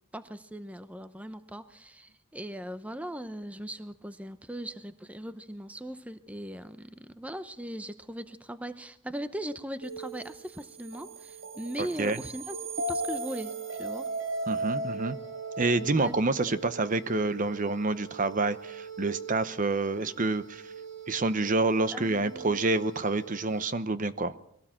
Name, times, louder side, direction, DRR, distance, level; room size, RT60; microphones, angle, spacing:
voice 1, 0.1-13.5 13.8-14.1 16.0-16.1 16.5-16.6 21.9-22.6, right 1 dB, 5° right, 11 dB, 0.7 m, -39 dB
sound 1, 9.8-23.7, right 3 dB, 85° right, 4.5 m, -38 dB
voice 2, 11.8-12.2 14.5-15.2 15.6-20.6 21.1-24.3, right 3 dB, 40° right, 13 dB, 0.9 m, -28 dB
22.0 x 17.5 x 7.5 m, 0.74 s
head